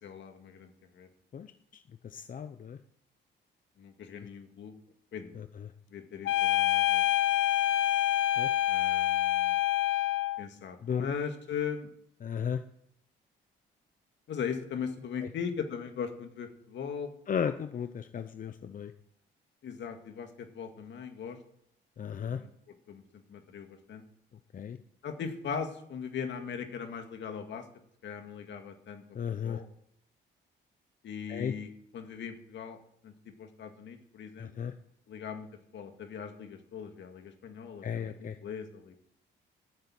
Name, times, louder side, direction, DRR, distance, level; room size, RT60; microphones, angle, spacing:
voice 1, 0.0-1.1 3.8-4.7 5.1-5.4 5.9-7.0 8.7-9.6 10.4-11.9 14.3-17.1 19.6-21.4 22.3-24.0 25.0-27.7 28.0-29.0 29.4-29.7 31.0-32.8 33.0-33.1 33.4-34.7 35.1-35.5 35.7-39.0, left 6 dB, 65° left, 6 dB, 2.0 m, -39 dB
voice 2, 2.0-2.8 5.4-5.7 8.4-8.6 10.8-11.1 12.2-12.6 15.2-15.3 17.3-18.9 22.0-22.4 24.5-24.8 29.1-29.6 31.3-31.5 34.4-34.7 37.8-38.4, left 7 dB, 45° left, 10 dB, 0.7 m, -35 dB
sound 1, 6.2-10.4, left 13 dB, 80° left, 0.7 m, -26 dB
11.0 x 7.9 x 8.8 m, 0.71 s
cardioid pair, 90°, 20 cm